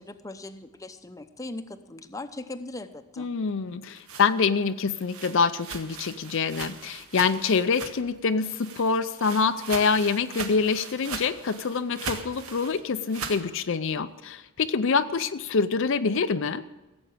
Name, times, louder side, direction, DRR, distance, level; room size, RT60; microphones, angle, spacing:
voice 1, 0.0-3.3, left 2 dB, 15° left, 8 dB, 0.7 m, -39 dB
voice 2, 3.2-16.6, left 5 dB, 60° left, 10 dB, 0.5 m, -26 dB
sound 1, 3.7-8.2 8.5-13.5, right 5 dB, 80° right, 1.6 m, -39 dB
16.5 x 8.0 x 8.8 m, 1.1 s
head